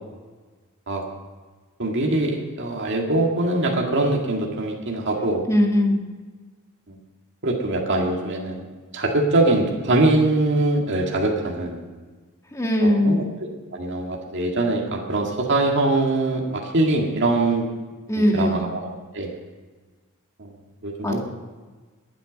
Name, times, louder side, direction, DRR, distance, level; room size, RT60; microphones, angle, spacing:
voice 1, 1.8-5.4 6.9-7.0 7.4-8.7 8.9-11.8 12.8-17.6 18.2-18.9 19.1-19.3 20.4-20.5 20.8-21.2, right 2 dB, 55° right, -1 dB, 2.0 m, -23 dB
voice 2, 5.5-6.0 12.5-13.2 18.1-18.7 21.0-21.2, left 1 dB, 15° left, 1 dB, 1.9 m, -20 dB
22.0 x 8.2 x 5.3 m, 1.4 s
head